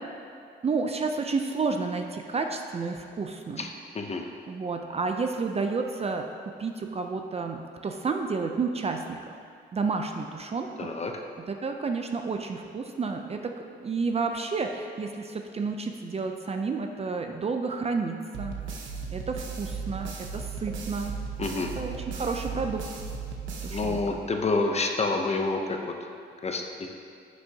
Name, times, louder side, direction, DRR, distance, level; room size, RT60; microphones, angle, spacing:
voice 1, 0.6-3.7 4.5-6.3 6.6-9.2 9.7-10.9 11.5-13.4 13.8-18.5 19.1-21.2 21.5-22.8 23.6-24.2, right 4 dB, 30° right, 4 dB, 0.5 m, -31 dB
voice 2, 10.8-11.1 21.4-21.7 23.7-25.6 26.4-26.9, left 3 dB, 35° left, 3 dB, 0.8 m, -28 dB
sound 1, 18.3-24.4, right 5 dB, 75° right, 0.9 m, -36 dB
9.7 x 6.2 x 2.8 m, 2.3 s
cardioid pair, 90°, 20 cm